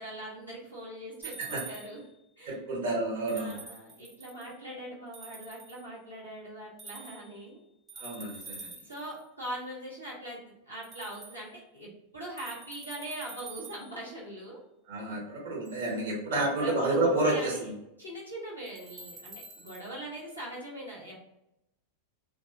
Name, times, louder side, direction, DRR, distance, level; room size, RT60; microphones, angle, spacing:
voice 1, 0.0-2.0 2.4-2.6 3.3-7.6 8.8-14.6 16.3-17.7 18.0-21.2, right 1 dB, 90° right, -6 dB, 1.0 m, -41 dB
sound 1, 1.2-2.1 3.3-4.6 5.1-5.9 6.8-7.4 7.9-9.2 10.8-11.4 12.4-14.0 15.7-15.9 17.3-17.4 18.7-19.9, right 4 dB, 25° right, 0.8 m, -47 dB
voice 2, 2.5-3.6 8.0-8.7 14.9-17.7, right 2 dB, 55° right, -3 dB, 1.0 m, -30 dB
3.2 x 2.5 x 2.5 m, 0.86 s
figure-of-eight pair, 90°, 0 cm